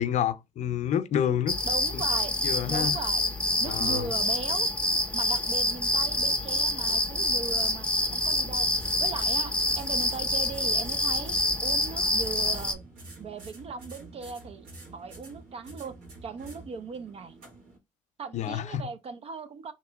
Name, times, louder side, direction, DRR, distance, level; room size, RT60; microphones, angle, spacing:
voice 1, 0.0-1.6 1.9-2.0 2.4-2.9 3.6-4.1 18.3-18.9, left 9 dB, 55° left, 0.6 m, -28 dB
sound 1, 1.5-12.7, left 1 dB, 10° left, 0.7 m, -27 dB
voice 2, 1.6-2.3 2.7-3.2 3.6-4.7 5.1-8.7 9.0-12.8 13.2-14.7 14.9-16.0 16.2-17.3 18.2-19.7, right 5 dB, 45° right, 0.5 m, -38 dB
sound 2, 2.1-17.8, right 2 dB, 75° right, 1.8 m, -49 dB
3.0 x 2.9 x 3.5 m
supercardioid pair, 60°, 14 cm